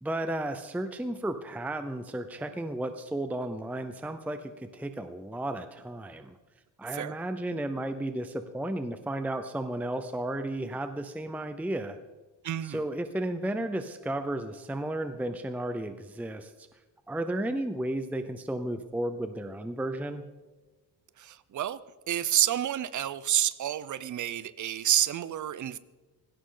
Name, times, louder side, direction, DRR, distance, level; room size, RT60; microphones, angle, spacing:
voice 1, 0.0-6.4 6.8-12.0 12.6-16.8 17.1-20.2, right 1 dB, 5° right, 8 dB, 0.6 m, -33 dB
voice 2, 12.4-12.8 21.2-21.8 22.1-25.8, right 11 dB, 45° right, 16 dB, 0.7 m, -29 dB
18.0 x 17.0 x 3.9 m, 1.2 s
cardioid pair, 160°, 41 cm